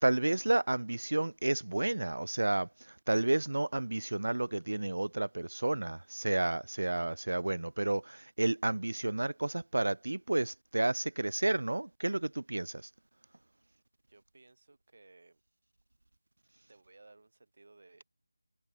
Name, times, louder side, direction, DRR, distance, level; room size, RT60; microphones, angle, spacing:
voice 1, 0.0-12.9, right 2 dB, 75° right, 0.3 m, -31 dB
voice 2, 6.8-7.3 14.1-15.4 16.7-18.0, right 3 dB, 40° right, 4.8 m, -60 dB
figure-of-eight pair, 180°, 0 cm